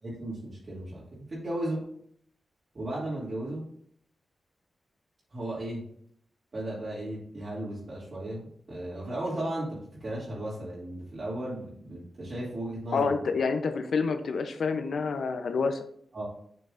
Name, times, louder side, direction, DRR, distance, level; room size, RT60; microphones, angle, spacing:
voice 1, 0.0-1.8 2.7-3.6 5.3-5.9 6.5-13.1 16.1-16.3, right 1 dB, 50° right, -7 dB, 2.6 m, -35 dB
voice 2, 12.9-15.8, left 4 dB, 75° left, 8 dB, 0.7 m, -28 dB
7.4 x 5.8 x 2.6 m, 0.64 s
cardioid pair, 80°, 0 cm